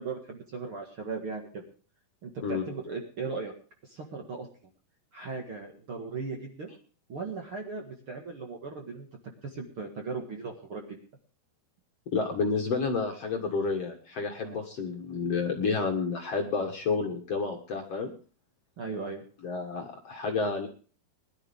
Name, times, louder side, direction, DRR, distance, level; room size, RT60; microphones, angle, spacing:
voice 1, 0.0-1.7 2.2-3.5 3.8-4.5 5.1-6.8 7.1-9.1 9.4-11.0 14.4-14.6 18.8-19.2, right 4 dB, 45° right, 2 dB, 2.1 m, -37 dB
voice 2, 12.1-18.1 19.4-20.7, left 4 dB, 50° left, 2 dB, 2.2 m, -30 dB
21.0 x 11.5 x 3.5 m, 0.41 s
omnidirectional pair, 4.3 m